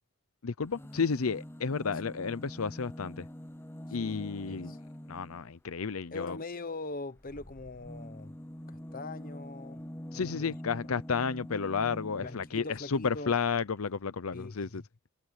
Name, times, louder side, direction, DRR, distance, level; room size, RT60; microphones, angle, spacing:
voice 1, 0.4-3.3 3.9-4.7 5.1-6.4 10.1-14.8, left 5 dB, 90° left, 0.7 m, -32 dB
sound 1, 0.6-5.5 7.2-12.6 13.6-13.7 13.9-14.0, equal, 10° left, 0.8 m, -45 dB
voice 2, 4.0-4.8 6.1-8.3 8.7-9.8 10.1-10.5 12.2-13.4 14.3-14.8, left 3 dB, 45° left, 1.1 m, -42 dB
head